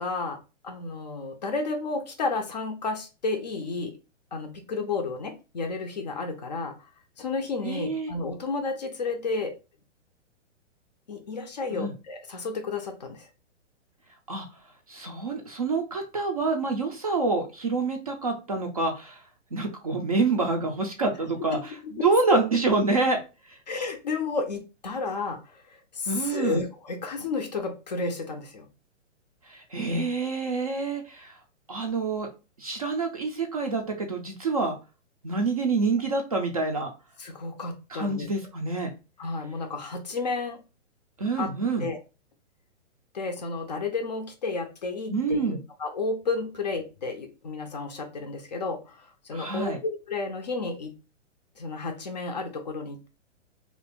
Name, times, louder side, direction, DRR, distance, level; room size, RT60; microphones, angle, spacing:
voice 1, 0.0-4.0 4.3-6.8 7.2-9.6 11.1-13.3 21.2-22.4 23.7-28.7 37.2-38.3 39.2-40.6 41.4-41.5 41.8-42.0 43.1-51.0 51.6-53.1, left 3 dB, 35° left, 0.4 m, -32 dB
voice 2, 7.6-8.1 11.7-11.9 14.3-14.5 14.9-19.2 19.5-23.2 23.5-23.6 26.1-26.6 29.5-31.3 31.7-32.3 32.6-34.7 35.2-36.9 37.9-38.9 41.2-41.9 45.1-45.6 49.3-49.8, right 3 dB, 30° right, 0.4 m, -27 dB
2.9 x 2.5 x 3.4 m
hypercardioid pair, 160°, 37 cm